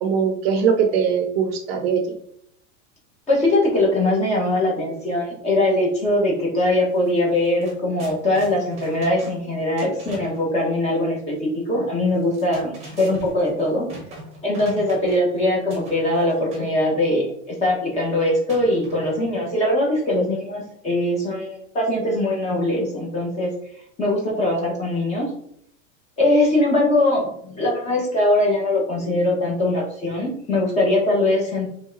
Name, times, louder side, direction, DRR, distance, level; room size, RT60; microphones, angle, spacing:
voice 1, 0.0-2.1, right 6 dB, 50° right, 4 dB, 0.7 m, -21 dB
voice 2, 3.3-13.9 14.4-23.5 24.0-25.3 26.2-31.7, left 1 dB, 15° left, -3 dB, 1.2 m, -21 dB
sound 1, 6.9-7.1 7.4-10.5 12.1-15.3 15.7-16.7 18.5-19.4, right 1 dB, 15° right, 1.1 m, -41 dB
3.9 x 3.4 x 3.8 m, 0.70 s
supercardioid pair, 175°, 40 cm